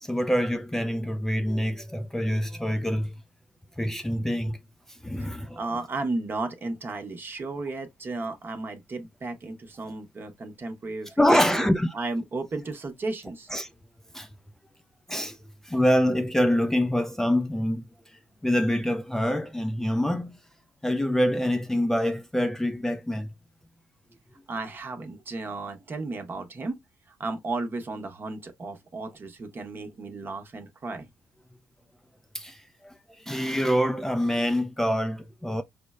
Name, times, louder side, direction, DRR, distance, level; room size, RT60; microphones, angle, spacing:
voice 1, 0.0-3.1 3.8-4.6 5.0-5.6 11.2-11.9 13.5-13.7 14.1-14.3 15.1-15.4 15.6-17.8 18.4-20.4 20.8-23.3 32.3-35.6, equal, 5° left, 0.4 m, -25 dB
voice 2, 5.2-13.5 24.5-26.8 27.1-31.1, right 3 dB, 40° right, 0.9 m, -34 dB
4.9 x 2.1 x 2.3 m
supercardioid pair, 60°, 6 cm